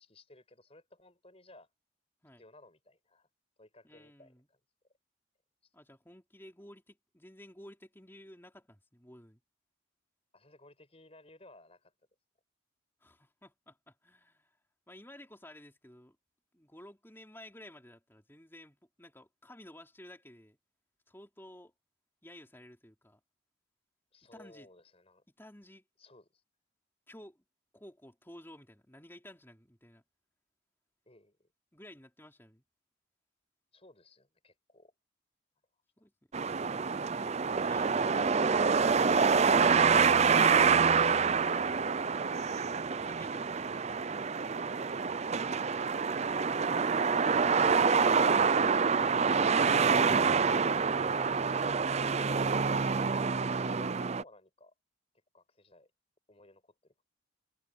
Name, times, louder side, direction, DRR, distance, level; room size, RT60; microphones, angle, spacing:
voice 1, 0.0-1.7 2.4-3.3 3.6-4.6 5.6-5.7 10.3-11.9 24.1-25.2 26.0-26.4 31.1-31.5 33.7-34.9 50.2-50.3 53.3-54.7 55.3-55.9 56.3-57.1, left 2 dB, 30° left, 5.8 m, -58 dB
voice 2, 3.8-4.5 5.7-9.4 13.0-14.6 14.9-16.2 16.5-20.6 21.1-21.7 22.2-23.2 24.2-24.7 25.4-25.8 27.1-27.4 27.7-30.0 31.7-32.6 36.0-36.1 36.4-39.5 42.4-44.4 44.7-45.1, left 1 dB, 10° left, 3.7 m, -54 dB
sound 1, 36.3-54.2, right 5 dB, 30° right, 0.5 m, -27 dB
head